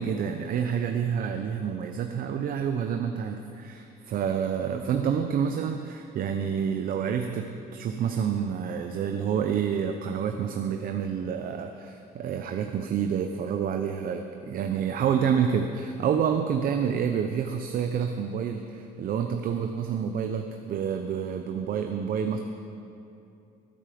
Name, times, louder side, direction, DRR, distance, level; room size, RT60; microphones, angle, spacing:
voice 1, 0.0-22.4, right 7 dB, 60° right, 5 dB, 0.8 m, -28 dB
19.5 x 8.9 x 5.2 m, 2.6 s
cardioid pair, 110°, 17 cm